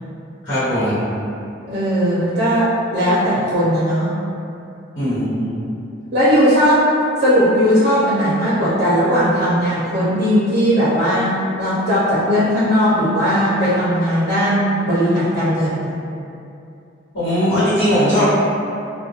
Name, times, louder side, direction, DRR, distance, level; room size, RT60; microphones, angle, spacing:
voice 1, 0.4-1.0 4.9-5.5 17.1-18.2, equal, 80° left, -15 dB, 1.1 m, -18 dB
voice 2, 1.7-4.1 6.1-6.9 7.2-11.3 11.6-16.0, equal, 55° right, -9 dB, 0.5 m, -17 dB
2.3 x 2.1 x 2.7 m, 2.6 s
head